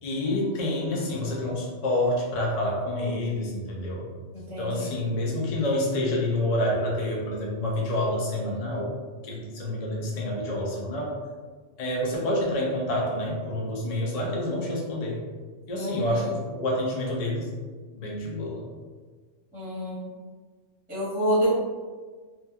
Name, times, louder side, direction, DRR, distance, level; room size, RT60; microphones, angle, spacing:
voice 1, 0.0-4.0 4.6-8.9 9.2-11.2 11.8-15.2 15.7-17.5 17.9-18.6, left 1 dB, 70° left, -3 dB, 0.3 m, -28 dB
voice 2, 4.3-4.9 15.8-16.3 19.5-20.1 20.9-21.5, equal, 10° right, -10 dB, 0.8 m, -28 dB
2.9 x 2.3 x 2.2 m, 1.4 s
omnidirectional pair, 1.3 m